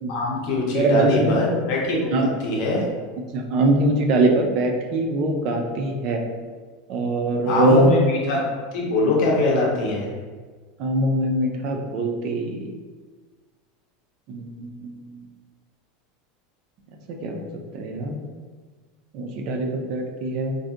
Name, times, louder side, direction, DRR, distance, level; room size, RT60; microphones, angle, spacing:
voice 1, 0.1-2.8 7.4-8.5 8.7-10.1, left 2 dB, 55° left, -2 dB, 0.7 m, -22 dB
voice 2, 0.7-1.4 2.1-2.3 3.3-6.2 6.9-7.9 10.8-12.7 14.3-15.0 17.1-17.5 17.7-18.1 19.1-20.6, right 2 dB, 50° right, 3 dB, 0.4 m, -22 dB
2.6 x 2.5 x 2.4 m, 1.5 s
supercardioid pair, 145°, 0 cm